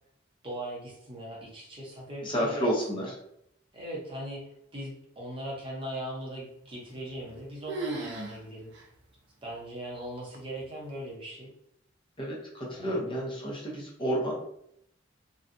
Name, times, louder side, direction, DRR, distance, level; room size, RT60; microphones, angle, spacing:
voice 1, 0.4-3.1 3.7-8.7 9.4-11.5 12.7-13.2, right 1 dB, 30° right, -3 dB, 0.7 m, -39 dB
voice 2, 2.2-3.1 12.2-14.3, equal, 25° left, -3 dB, 0.6 m, -30 dB
sound 1, 6.9-7.4 7.7-8.4 8.7-8.8 9.5-9.6 10.3-10.7, right 3 dB, 65° right, 0.5 m, -36 dB
2.7 x 2.2 x 2.5 m, 0.73 s
head